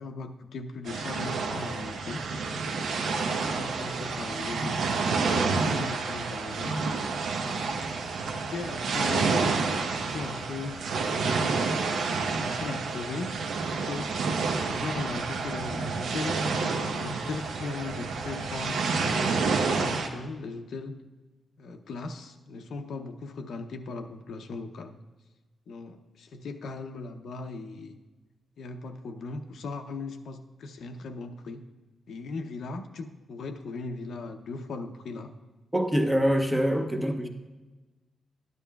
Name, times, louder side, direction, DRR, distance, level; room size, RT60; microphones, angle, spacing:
voice 1, 0.0-2.3 3.4-4.8 5.3-6.7 7.4-7.8 8.3-10.8 11.6-13.4 13.7-14.1 14.6-21.0 21.6-24.9 25.7-28.0 28.6-31.6 32.1-35.3 37.0-37.3, left 3 dB, 65° left, 6 dB, 0.6 m, -38 dB
sound 1, 0.9-20.1, right 4 dB, 90° right, 0.9 m, -29 dB
voice 2, 35.7-37.3, equal, 5° right, 3 dB, 0.6 m, -25 dB
12.5 x 10.5 x 2.3 m, 1.2 s
wide cardioid pair, 180°, 0 cm